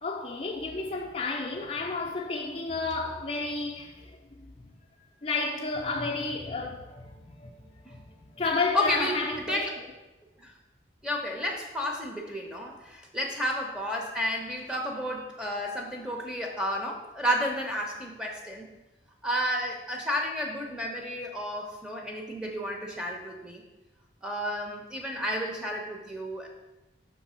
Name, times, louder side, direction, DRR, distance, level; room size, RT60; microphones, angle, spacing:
voice 1, 0.0-4.7 5.0-9.8, left 3 dB, 35° left, 0.5 m, -32 dB
voice 2, 8.7-9.1 9.5-9.7 10.4-10.5 11.0-18.7 19.2-23.6 24.2-26.5, equal, 5° right, 0.7 m, -31 dB
5.9 x 3.4 x 5.5 m
head